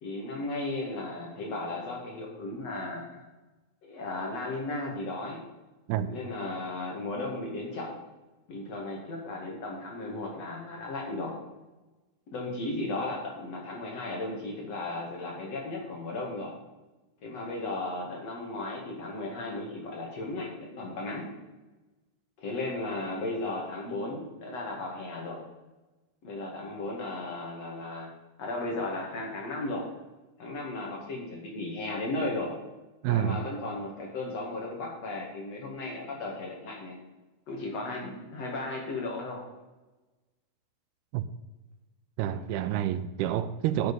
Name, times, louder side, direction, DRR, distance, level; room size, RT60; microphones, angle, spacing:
voice 1, 0.0-3.2 3.8-5.4 6.1-8.0 8.5-11.3 12.3-16.5 17.2-21.3 22.4-25.4 26.2-28.1 28.4-29.8 30.4-32.5 33.0-37.0 37.5-39.4 42.3-42.6, left 2 dB, 45° left, 2.8 m, -35 dB
voice 2, 33.0-33.4 41.1-41.2 42.2-43.9, right 11 dB, 90° right, 2.7 m, -28 dB
9.3 x 9.3 x 5.5 m
omnidirectional pair, 4.5 m